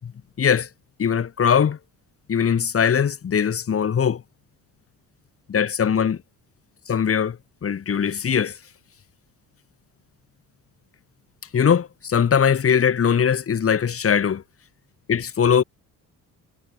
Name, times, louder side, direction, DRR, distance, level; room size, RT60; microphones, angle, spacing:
voice 1, 0.4-0.7 1.0-1.8 2.3-4.2 5.5-6.2 6.9-8.6 11.5-14.4 15.1-15.6, left 7 dB, 40° left, 6.5 m, -21 dB
cardioid pair, 140°, 35 cm